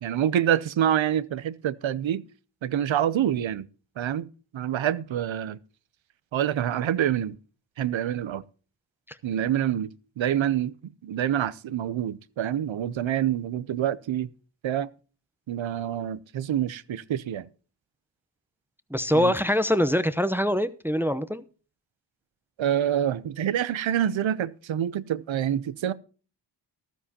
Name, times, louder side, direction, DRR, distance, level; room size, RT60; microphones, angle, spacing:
voice 1, 0.0-2.2 2.6-3.7 4.0-4.3 4.5-5.6 6.3-7.4 7.8-8.4 9.2-10.7 11.0-14.3 14.6-14.9 15.5-17.5 19.1-19.3 22.6-25.9, right 10 dB, 90° right, 0.7 m, -26 dB
voice 2, 18.9-21.4, equal, 5° right, 0.8 m, -24 dB
14.5 x 12.5 x 2.8 m
cardioid pair, 50°, 45 cm